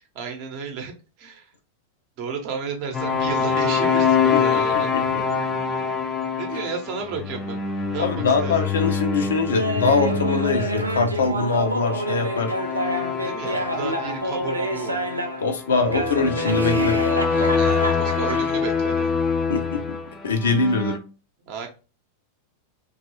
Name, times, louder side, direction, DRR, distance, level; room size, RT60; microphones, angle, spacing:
voice 1, 0.1-0.9 1.2-1.5 2.2-5.3 6.3-8.5 13.2-15.0 17.4-19.2 21.4-21.7, right 5 dB, 45° right, 4 dB, 0.8 m, -33 dB
sound 1, 2.9-21.0, left 6 dB, 20° left, 0.5 m, -25 dB
voice 2, 4.3-4.8 5.1-5.2 8.0-12.5 15.4-17.0 19.5-20.0 20.2-21.0, left 4 dB, 65° left, 5 dB, 0.6 m, -23 dB
Laughter, 9.5-15.5 15.9-18.5, right 1 dB, 85° right, 0.5 m, -28 dB
2.9 x 2.3 x 2.8 m, 0.33 s
figure-of-eight pair, 90°, 0 cm